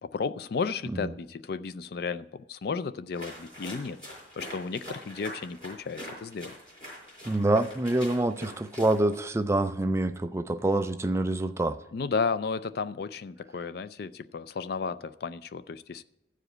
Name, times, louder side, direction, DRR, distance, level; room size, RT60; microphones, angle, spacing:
voice 1, 0.0-4.0 4.4-6.5 11.9-16.0, left 5 dB, 55° left, 0.4 m, -33 dB
sound 1, 3.1-9.2, equal, 25° left, 4.9 m, -43 dB
voice 2, 7.3-11.8, right 2 dB, 15° right, 0.3 m, -26 dB
13.5 x 5.0 x 7.8 m
head